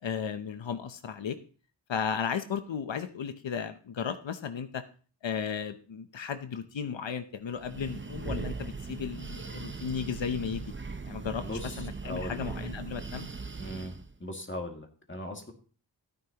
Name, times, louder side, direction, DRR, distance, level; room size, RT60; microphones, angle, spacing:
voice 1, 0.0-1.4 1.9-4.8 5.2-10.6 11.0-13.3, left 7 dB, 85° left, 9 dB, 0.8 m, -35 dB
Breathing, 7.5-14.1, right 4 dB, 25° right, 0.6 m, -39 dB
voice 2, 11.4-12.5 13.6-13.9 14.2-15.5, left 1 dB, 25° left, 3 dB, 2.0 m, -39 dB
14.5 x 9.3 x 2.9 m, 0.39 s
wide cardioid pair, 65°, 43 cm